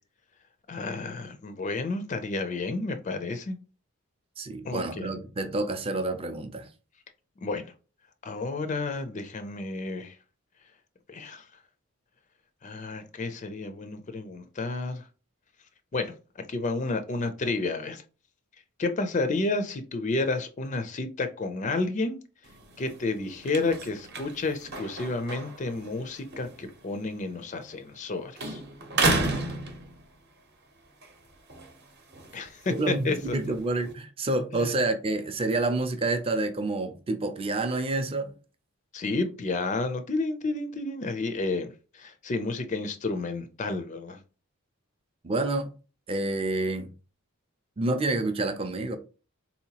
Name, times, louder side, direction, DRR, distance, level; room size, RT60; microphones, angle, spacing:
voice 1, 0.7-3.6 4.6-5.1 7.4-7.7 8.2-10.2 11.1-11.4 12.6-15.0 15.9-18.0 18.8-22.2 22.8-28.6 32.3-33.5 34.5-34.7 38.9-44.2, left 3 dB, 35° left, 0.4 m, -31 dB
voice 2, 4.4-6.7 32.7-38.3 45.2-45.7 46.1-46.9 47.8-49.0, right 2 dB, 25° right, 0.5 m, -28 dB
sound 1, 22.4-28.1 28.4-30.4 30.9-33.9, right 2 dB, 50° right, 0.8 m, -33 dB
4.0 x 2.8 x 2.8 m
head